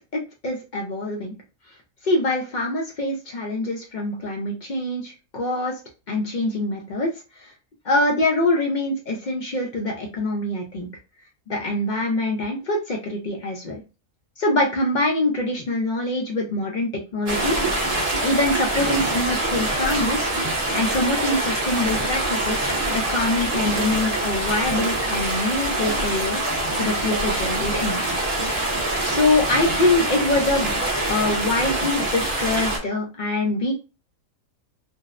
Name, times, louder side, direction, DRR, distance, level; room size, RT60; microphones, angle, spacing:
voice 1, 0.4-1.3 2.0-5.8 6.1-7.5 7.8-10.9 11.5-13.8 14.4-17.6 18.2-20.3 20.7-22.6 22.9-28.0 29.0-33.7, left 2 dB, 65° left, 0 dB, 0.4 m, -24 dB
sound 1, 17.3-32.8, right 1 dB, 35° right, 0.7 m, -24 dB
2.6 x 2.0 x 2.4 m, 0.30 s
omnidirectional pair, 1.4 m